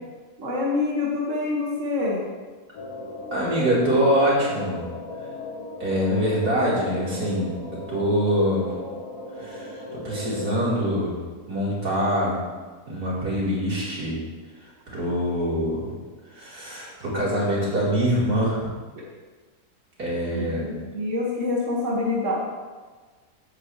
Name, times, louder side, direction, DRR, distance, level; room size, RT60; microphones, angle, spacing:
voice 1, 0.4-2.2 20.3-22.3, left 2 dB, 50° right, -5 dB, 2.4 m, -26 dB
sound 1, 2.7-10.7, left 1 dB, 70° left, 2.0 m, -36 dB
voice 2, 3.3-4.8 5.8-7.5 7.9-8.7 9.4-11.2 11.5-12.4 12.9-14.2 14.9-15.9 16.3-18.7 20.0-20.8, equal, 90° right, -7 dB, 4.8 m, -24 dB
16.5 x 9.7 x 3.4 m, 1.4 s
omnidirectional pair, 1.6 m